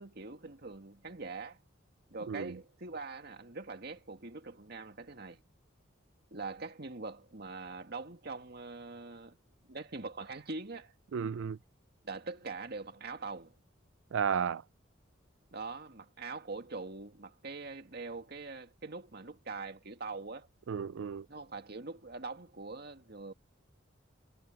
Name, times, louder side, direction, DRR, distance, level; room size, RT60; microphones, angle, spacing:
voice 1, 0.0-1.6 2.1-5.4 6.3-9.3 9.7-10.9 12.0-13.5 15.5-20.5 21.3-23.3, right 3 dB, 55° right, 2.1 m, -43 dB
voice 2, 11.1-11.6 14.1-14.6 20.7-21.3, right 7 dB, 75° right, 0.4 m, -33 dB
head